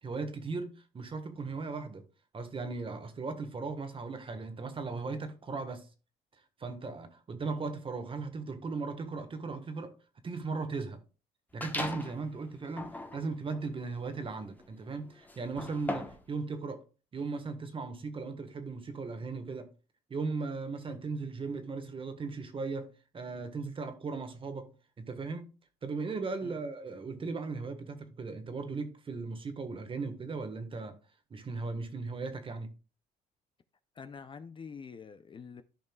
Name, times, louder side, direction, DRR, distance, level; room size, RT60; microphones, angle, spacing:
voice 1, 0.0-2.0 2.3-5.9 6.6-10.0 10.2-11.0 11.5-16.8 17.1-19.7 20.1-24.7 25.0-25.5 25.8-31.0 31.3-32.7, right 4 dB, 30° right, 1.4 m, -37 dB
sound 1, 11.6-12.2 12.7-16.3, left 2 dB, 10° left, 1.1 m, -39 dB
voice 2, 34.0-35.6, left 6 dB, 30° left, 0.6 m, -46 dB
14.5 x 5.3 x 2.3 m
cardioid pair, 110°, 17 cm